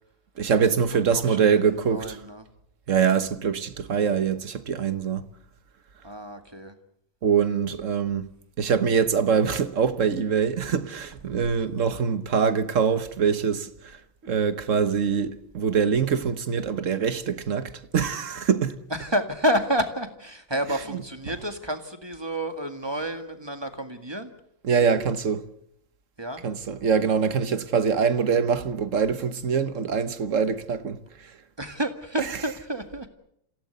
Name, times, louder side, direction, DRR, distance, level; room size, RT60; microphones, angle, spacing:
voice 1, 0.4-2.2 2.9-5.3 7.2-8.3 8.6-14.0 14.2-18.8 20.7-21.0 24.6-25.4 26.4-31.3 32.2-32.3, right 6 dB, 65° right, 1.5 m, -24 dB
voice 2, 1.1-2.4 6.0-6.7 18.9-24.3 26.2-26.4 31.6-33.1, equal, 20° right, 1.9 m, -29 dB
27.5 x 16.0 x 8.1 m
omnidirectional pair, 1.4 m